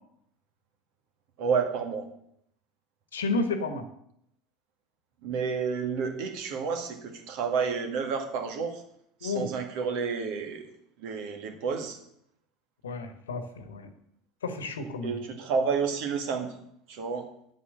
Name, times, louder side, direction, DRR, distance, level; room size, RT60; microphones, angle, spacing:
voice 1, 1.4-2.1 5.2-8.8 9.2-10.7 11.0-12.0 15.0-16.5 16.9-17.3, right 5 dB, 55° right, 5 dB, 2.0 m, -30 dB
voice 2, 3.1-3.9 9.2-9.5 12.8-13.9 14.4-15.2, left 3 dB, 70° left, 9 dB, 1.4 m, -31 dB
10.5 x 8.2 x 6.5 m, 0.72 s
figure-of-eight pair, 70°, 0 cm